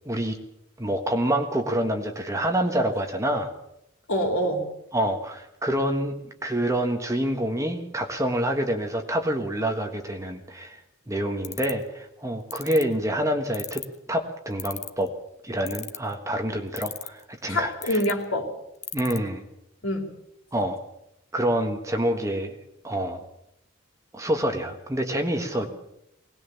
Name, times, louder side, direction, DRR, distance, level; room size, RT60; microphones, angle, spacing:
voice 1, 0.0-0.4 0.8-3.5 4.9-6.2 6.4-10.8 11.1-15.1 15.4-18.0 18.9-19.4 20.5-20.8 21.3-22.6 22.8-23.2 24.1-25.7, right 1 dB, 15° right, 4 dB, 1.5 m, -27 dB
voice 2, 4.1-4.7 17.5-18.5 19.8-20.1 25.5-25.7, equal, 80° left, 4 dB, 3.5 m, -26 dB
sound 1, 11.4-11.8 12.5-12.8 13.5-14.0 14.6-15.1 15.7-16.1 16.8-17.2 17.8-18.1 18.8-19.2, left 11 dB, 35° left, 0.9 m, -34 dB
20.0 x 19.0 x 7.1 m, 0.81 s
head